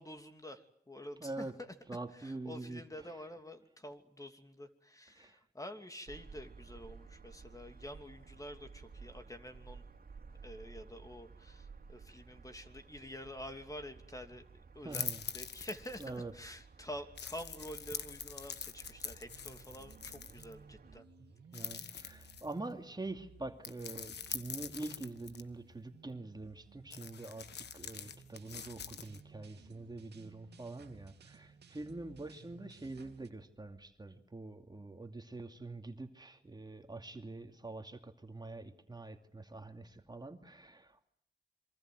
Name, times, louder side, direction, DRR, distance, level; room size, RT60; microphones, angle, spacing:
voice 1, 0.0-1.7 2.1-9.8 10.4-14.4 14.7-21.0 21.5-22.0, left 1 dB, 20° left, 7 dB, 2.8 m, -48 dB
voice 2, 1.2-1.5 1.9-2.8 5.1-5.4 14.8-15.2 16.0-16.3 21.5-41.1, right 2 dB, 25° right, 5 dB, 2.6 m, -45 dB
sound 1, 6.1-21.0, right 4 dB, 60° right, 2.7 m, -55 dB
sound 2, 14.9-16.2 17.2-20.5 21.5-22.6 23.6-25.4 26.9-29.2, left 7 dB, 80° left, 1.4 m, -44 dB
sound 3, 18.8-33.3, right 5 dB, 80° right, 2.5 m, -59 dB
27.0 x 24.0 x 7.9 m, 0.68 s
cardioid pair, 60°, 17 cm